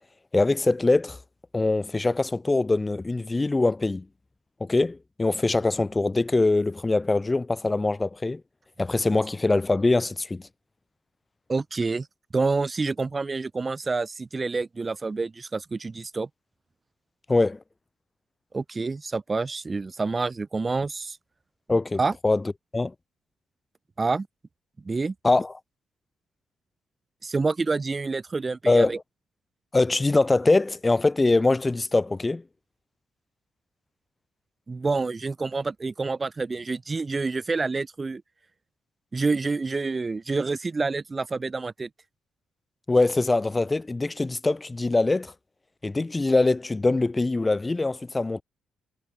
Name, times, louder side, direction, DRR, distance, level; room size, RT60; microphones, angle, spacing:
voice 1, 0.3-1.2 1.5-4.0 4.6-8.4 8.8-10.4 17.3-17.6 21.7-22.4 22.7-22.9 25.2-25.5 28.7-29.0 29.7-32.4 42.9-45.3 45.8-48.4, left 2 dB, 20° left, 5.7 m, -23 dB
voice 2, 11.5-12.1 12.3-16.3 18.5-21.2 22.0-22.1 24.0-24.3 24.8-25.1 27.2-29.0 34.7-38.2 39.1-41.9, right 3 dB, 25° right, 4.6 m, -28 dB
cardioid pair, 110°, 0 cm